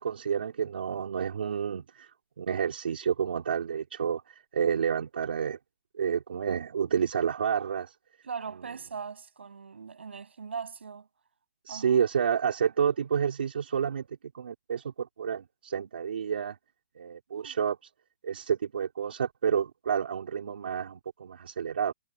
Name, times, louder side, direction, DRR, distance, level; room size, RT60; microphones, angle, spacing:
voice 1, 0.0-2.1 2.4-5.6 6.0-7.9 11.7-14.1 14.3-16.6 17.0-17.8 18.2-21.9, right 7 dB, 65° right, 2.6 m, -29 dB
voice 2, 8.3-11.1 11.7-12.0 17.3-17.5, right 6 dB, 85° right, 6.8 m, -40 dB
hypercardioid pair, 165°, 6 cm